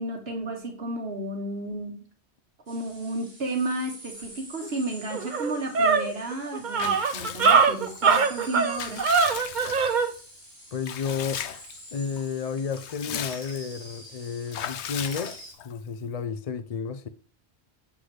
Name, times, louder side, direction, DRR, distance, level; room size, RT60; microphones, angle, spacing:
voice 1, 0.0-2.0 2.7-9.1, right 2 dB, 65° right, 1.4 m, -32 dB
sound 1, 2.7-15.5, right 1 dB, 15° right, 3.5 m, -47 dB
sound 2, 4.6-4.7 5.1-10.1, right 5 dB, 50° right, 0.8 m, -22 dB
Water / Bathtub (filling or washing) / Liquid, 6.8-8.0 8.5-10.2 10.8-11.8 12.2-12.3 12.6-13.8 14.5-15.8, left 10 dB, 80° left, 0.9 m, -37 dB
voice 2, 10.7-11.4 11.9-17.1, left 6 dB, 50° left, 0.5 m, -32 dB
7.7 x 6.0 x 3.2 m
omnidirectional pair, 1.1 m